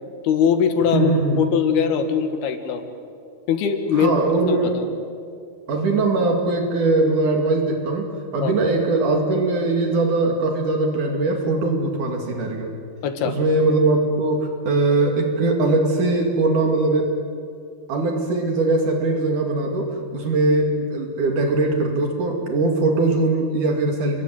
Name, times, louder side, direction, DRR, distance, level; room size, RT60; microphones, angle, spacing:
voice 1, 0.2-1.1 1.4-2.8 3.5-4.9 8.4-8.6 13.0-13.3, left 7 dB, 85° left, 7 dB, 3.8 m, -21 dB
voice 2, 0.9-1.4 3.9-4.8 5.7-12.8 13.3-17.1 17.9-24.2, right 2 dB, 55° right, 3 dB, 3.7 m, -21 dB
29.0 x 22.0 x 9.4 m, 2.4 s
omnidirectional pair, 4.4 m